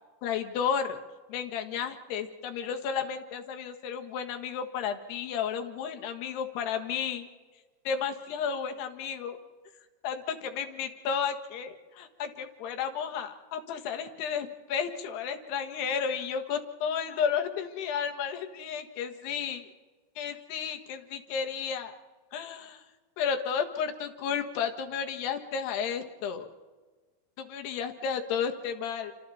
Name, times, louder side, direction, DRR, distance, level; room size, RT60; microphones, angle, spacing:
voice 1, 0.2-1.0 1.3-7.3 7.9-9.4 10.0-19.7 20.2-22.0 22.3-22.8 23.2-26.5 27.4-29.1, left 7 dB, 75° left, 6 dB, 3.6 m, -32 dB
29.0 x 26.5 x 4.3 m, 1.3 s
omnidirectional pair, 4.8 m